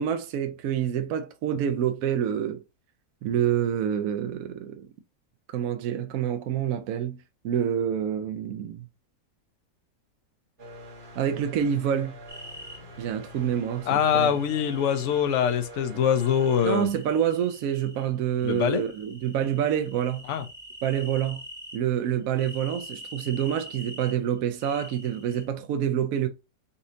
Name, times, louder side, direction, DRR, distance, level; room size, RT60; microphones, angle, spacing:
voice 1, 0.0-2.6 3.2-4.9 5.5-7.2 7.4-8.8 11.2-12.1 13.0-14.4 16.6-20.2 20.8-21.4 21.7-26.3, right 9 dB, 70° right, 0.9 m, -27 dB
sound 1, 10.6-16.7, equal, 35° right, 1.1 m, -45 dB
sound 2, 12.3-12.8 13.9-15.5 16.1-18.1 18.4-21.8 22.3-24.1 24.6-25.4, equal, 10° right, 1.0 m, -45 dB
voice 2, 13.9-16.9 18.4-18.8 20.3-20.4, left 8 dB, 60° left, 0.8 m, -24 dB
4.1 x 2.7 x 3.7 m
omnidirectional pair, 1.7 m